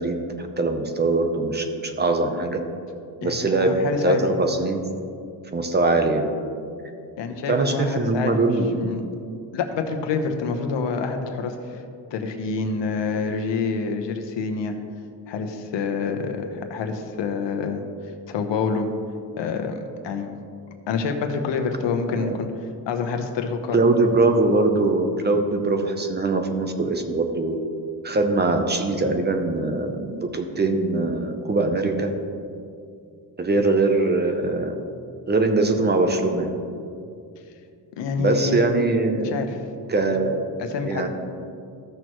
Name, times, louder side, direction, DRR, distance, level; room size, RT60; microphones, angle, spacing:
voice 1, 0.0-2.6 3.2-4.9 5.5-6.3 7.5-8.9 22.1-22.4 23.7-27.6 28.0-32.1 33.4-34.7 35.3-36.5 38.2-39.4 39.9-40.4 40.8-41.1, right 2 dB, 25° right, 6 dB, 0.6 m, -22 dB
voice 2, 3.2-4.2 7.2-8.5 8.8-9.0 9.5-11.8 12.1-14.8 15.3-17.8 18.3-18.9 19.4-20.3 20.9-22.5 22.9-23.8 38.0-38.6 39.2-39.5 40.0-40.1 40.6-41.1, left 5 dB, 85° left, 5 dB, 1.0 m, -27 dB
14.5 x 6.4 x 3.0 m, 2.4 s
cardioid pair, 145°, 42 cm